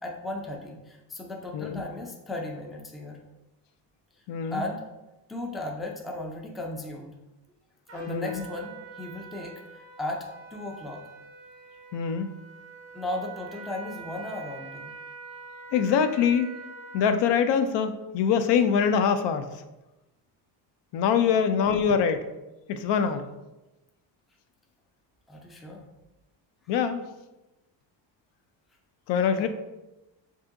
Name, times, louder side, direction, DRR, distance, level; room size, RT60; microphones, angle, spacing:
voice 1, 0.0-3.2 4.1-4.2 4.5-4.9 5.3-7.2 7.9-11.0 12.9-14.9 21.3-21.7 25.3-25.9 26.6-26.7 29.4-29.5, left 2 dB, ahead, 0 dB, 0.4 m, -36 dB
voice 2, 4.3-4.6 8.1-8.3 11.9-12.3 15.7-16.5 16.9-19.5 20.9-22.2 22.7-23.3 26.7-27.0 29.1-29.5, left 7 dB, 70° left, 9 dB, 0.5 m, -24 dB
Trumpet, 7.9-17.4, right 4 dB, 35° right, 0.9 m, -45 dB
7.1 x 2.7 x 2.5 m, 1.0 s
cardioid pair, 135°, 45 cm